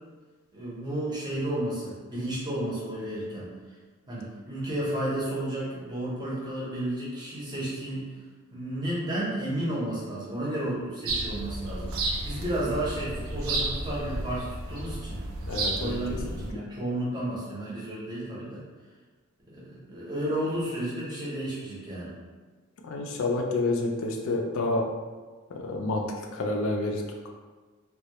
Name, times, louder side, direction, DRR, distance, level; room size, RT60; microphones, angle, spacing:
voice 1, 0.5-3.4 4.1-8.1 8.5-15.2 15.7-18.6 19.5-22.1, right 1 dB, 20° right, -8 dB, 0.6 m, -32 dB
sound 1, 11.1-16.5, right 2 dB, 65° right, 0.3 m, -32 dB
voice 2, 15.5-16.0 16.3-16.4 22.8-24.8 25.6-26.0 26.3-27.0, left 2 dB, 65° left, 2 dB, 0.3 m, -28 dB
2.2 x 2.0 x 2.8 m, 1.3 s
head